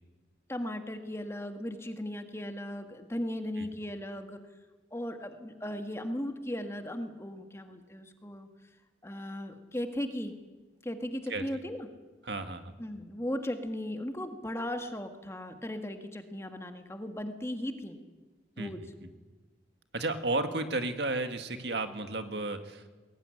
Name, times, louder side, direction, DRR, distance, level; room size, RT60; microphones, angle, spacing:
voice 1, 0.5-4.4 4.9-8.5 9.0-10.4 10.8-11.9 12.8-18.0 18.6-18.8, left 1 dB, 15° left, 6 dB, 1.7 m, -37 dB
voice 2, 12.2-12.7 18.6-18.7 19.0-19.1 19.9-22.9, right 2 dB, 70° right, 8 dB, 1.9 m, -33 dB
21.0 x 18.5 x 9.8 m, 1.3 s
head